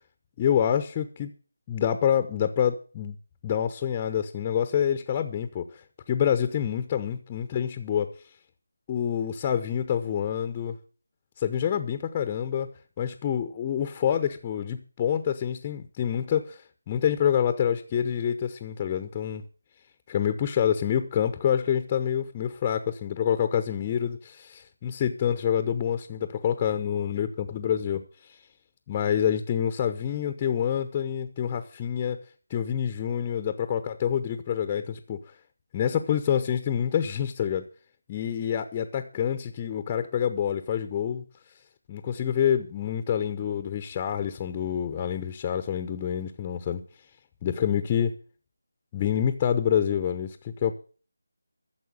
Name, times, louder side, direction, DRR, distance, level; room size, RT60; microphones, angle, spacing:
voice 1, 0.4-1.3 1.7-3.2 3.4-8.1 8.9-10.8 11.4-12.7 13.0-16.6 16.9-19.4 20.1-28.4 28.9-32.2 32.5-35.2 35.7-37.7 38.1-41.2 41.9-46.8 47.4-48.1 48.9-50.7, left 9 dB, 20° left, 9 dB, 0.9 m, -27 dB
14.0 x 7.1 x 8.1 m, 0.40 s
figure-of-eight pair, 160°, 0 cm